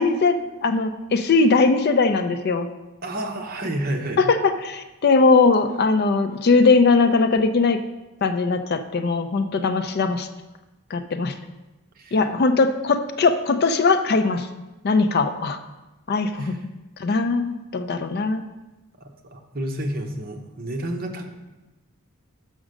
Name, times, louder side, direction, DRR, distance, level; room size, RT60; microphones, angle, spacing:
voice 1, 0.0-2.7 4.2-7.8 8.2-10.3 10.9-11.4 12.1-14.5 14.8-15.6 16.1-16.6 17.0-18.4, left 4 dB, 45° left, 9 dB, 0.4 m, -20 dB
voice 2, 3.0-4.2 12.0-12.2 16.4-16.5 19.3-21.2, right 1 dB, 40° right, 3 dB, 0.9 m, -29 dB
6.0 x 5.1 x 6.4 m, 1.1 s
head